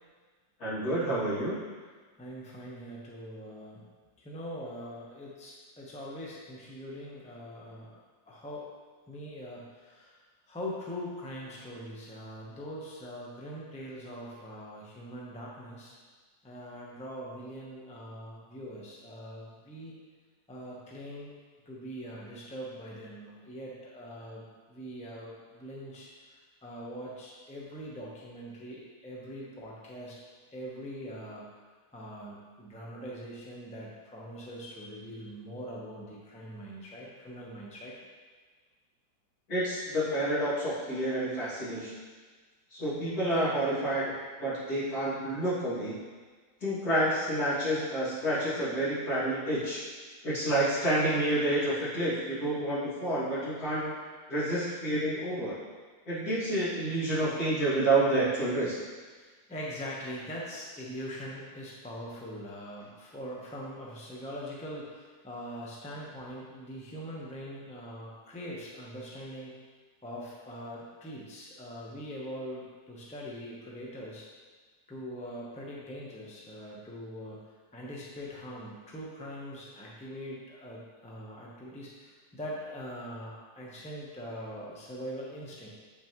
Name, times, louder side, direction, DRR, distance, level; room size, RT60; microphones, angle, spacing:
voice 1, 0.6-1.5 39.5-41.9 42.7-44.1 44.4-46.0 46.6-49.8 50.2-53.9 54.3-55.6 56.1-58.7, right 1 dB, 65° left, -10 dB, 2.9 m, -29 dB
voice 2, 2.2-3.8 4.2-7.9 8.3-8.6 9.1-10.2 10.5-15.9 16.4-19.9 20.5-21.3 21.7-26.1 26.6-30.1 30.5-31.5 31.9-37.9 59.1-69.5 70.0-74.2 74.9-77.4 77.7-85.7, equal, 5° left, -5 dB, 0.8 m, -42 dB
8.5 x 5.7 x 3.1 m, 1.4 s
omnidirectional pair, 1.8 m